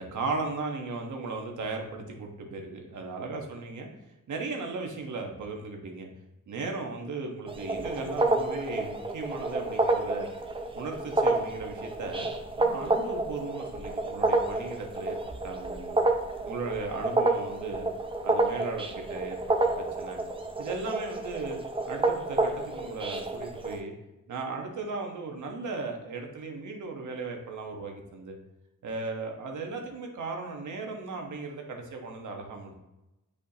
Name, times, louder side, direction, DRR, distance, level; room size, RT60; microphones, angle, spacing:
voice 1, 0.0-3.9 4.3-6.1 6.5-10.3 10.7-12.3 12.6-16.0 16.4-17.9 18.2-20.2 20.6-21.6 21.9-23.9 24.3-28.4 28.8-32.8, right 3 dB, 90° right, 2 dB, 1.3 m, -36 dB
sound 1, 7.5-23.8, right 2 dB, 20° right, 0.6 m, -29 dB
8.8 x 5.1 x 2.9 m, 0.96 s
wide cardioid pair, 160°, 29 cm